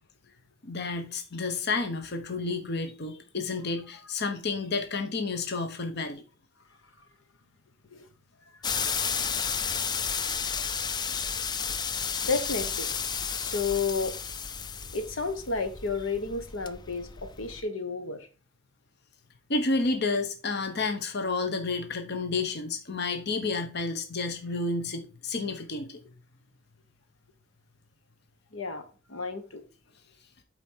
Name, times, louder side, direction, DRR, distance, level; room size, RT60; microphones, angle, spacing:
voice 1, 0.6-6.2 8.8-9.0 19.5-26.0, left 3 dB, 55° left, 1.0 m, -30 dB
sound 1, 8.6-17.6, left 6 dB, 20° left, 0.3 m, -32 dB
voice 2, 12.2-12.9 13.3-14.1 14.9-17.1 17.4-18.3 28.5-29.6, left 4 dB, 90° left, 1.2 m, -31 dB
8.2 x 4.5 x 4.4 m
head